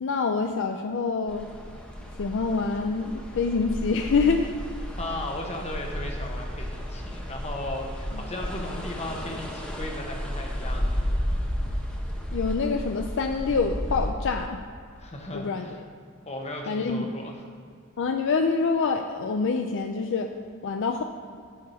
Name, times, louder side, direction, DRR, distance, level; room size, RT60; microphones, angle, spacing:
voice 1, 0.0-1.5 2.2-4.5 8.1-8.3 12.3-14.6 15.3-15.8 16.7-17.1 18.0-20.3 20.6-21.0, left 4 dB, 60° left, 5 dB, 0.5 m, -26 dB
sound 1, 1.3-14.1, equal, 5° left, 1.0 m, -32 dB
voice 2, 4.8-10.9 15.0-15.8 16.2-17.4, left 1 dB, 30° left, 2 dB, 1.2 m, -36 dB
9.1 x 4.7 x 6.9 m, 2.3 s
head